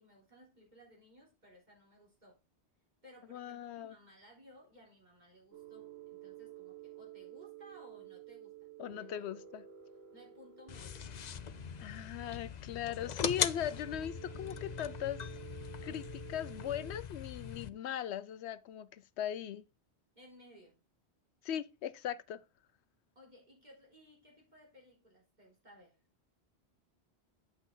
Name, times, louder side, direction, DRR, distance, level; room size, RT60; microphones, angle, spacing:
voice 1, 0.0-2.4 3.0-9.3 10.1-11.1 20.1-20.8 23.2-26.0, equal, 40° right, 4.0 m, -59 dB
voice 2, 3.3-3.9 8.8-9.6 11.8-15.2 15.8-19.6 21.4-22.4, left 10 dB, 85° left, 0.9 m, -39 dB
sound 1, 5.5-17.0, right 11 dB, 70° right, 1.8 m, -52 dB
sound 2, 10.7-17.7, left 8 dB, 50° left, 0.6 m, -40 dB
9.1 x 6.0 x 3.8 m
omnidirectional pair, 1.1 m